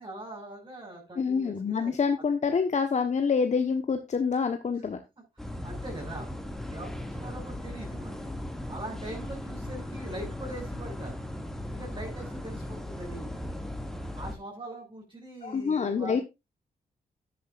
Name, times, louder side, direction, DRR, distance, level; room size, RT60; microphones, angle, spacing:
voice 1, 0.0-1.9 5.4-6.3 6.7-8.3 8.7-11.2 11.6-13.3 14.1-16.2, right 1 dB, 30° right, -2 dB, 6.2 m, -42 dB
voice 2, 1.2-5.0 15.4-16.2, left 5 dB, 45° left, 7 dB, 1.2 m, -27 dB
sound 1, 5.4-14.4, left 1 dB, ahead, 2.2 m, -37 dB
12.5 x 9.6 x 2.5 m, 0.23 s
cardioid pair, 65°, 16 cm